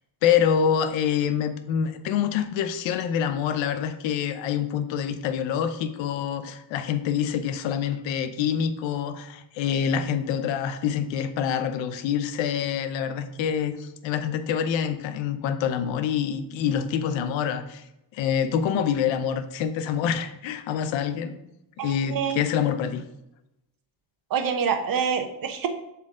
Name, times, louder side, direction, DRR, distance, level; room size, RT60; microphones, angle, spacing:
voice 1, 0.2-17.8 18.1-21.4 21.8-23.0, left 8 dB, 85° left, 11 dB, 0.8 m, -26 dB
voice 2, 21.8-22.4 24.3-25.7, right 7 dB, 50° right, 7 dB, 0.9 m, -26 dB
7.2 x 4.4 x 3.7 m, 0.86 s
cardioid pair, 115°, 44 cm